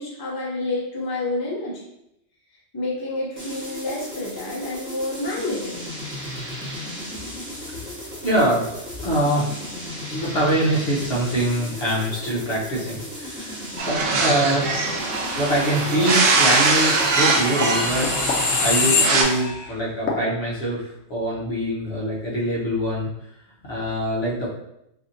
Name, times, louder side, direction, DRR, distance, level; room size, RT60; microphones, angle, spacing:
voice 1, 0.0-1.9 2.7-5.9, left 2 dB, 30° left, -6 dB, 0.5 m, -29 dB
sound 1, 3.4-19.6, equal, 10° right, 0.6 m, -35 dB
voice 2, 7.6-23.1 23.6-24.5, right 1 dB, 55° left, -5 dB, 1.2 m, -24 dB
sound 2, 13.8-19.2, right 3 dB, 85° right, 1.0 m, -22 dB
sound 3, 16.8-19.7 20.1-20.2, left 4 dB, 70° left, 0.9 m, -24 dB
3.3 x 2.6 x 2.6 m, 0.80 s
omnidirectional pair, 1.3 m